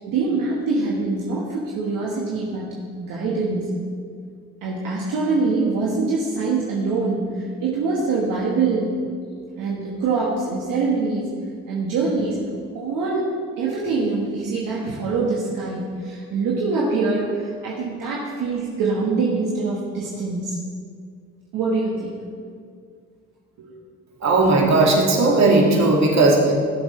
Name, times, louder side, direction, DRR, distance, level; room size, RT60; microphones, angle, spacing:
voice 1, 0.0-3.7 4.6-9.0 9.6-11.3 11.7-12.4 12.7-13.3 13.6-20.6 21.5-22.1 23.6-23.7 24.2-24.3, right 3 dB, 75° right, -4 dB, 1.7 m, -24 dB
voice 2, 24.2-26.5, right 2 dB, 55° right, -1 dB, 2.5 m, -16 dB
17.0 x 7.6 x 3.3 m, 2.1 s
supercardioid pair, 65°, 34 cm